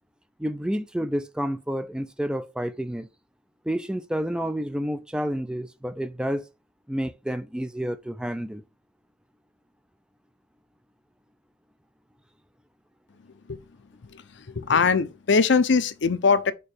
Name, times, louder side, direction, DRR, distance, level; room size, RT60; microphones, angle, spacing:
voice 1, 0.4-3.1 3.7-6.4 6.9-8.6, equal, 5° right, 0.4 m, -29 dB
voice 2, 14.0-16.5, left 5 dB, 65° left, 0.6 m, -22 dB
4.8 x 4.6 x 4.9 m
head